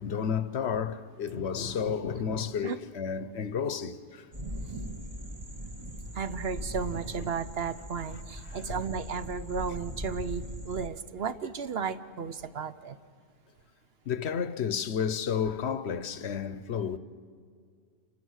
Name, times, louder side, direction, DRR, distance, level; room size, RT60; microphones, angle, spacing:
voice 1, 0.0-4.2 8.5-8.8 14.1-17.0, left 7 dB, 60° left, 1.0 m, -31 dB
sound 1, 4.3-10.9, equal, 25° right, 1.1 m, -40 dB
voice 2, 6.1-13.0, right 6 dB, 55° right, 0.9 m, -34 dB
28.5 x 24.5 x 6.4 m
omnidirectional pair, 1.3 m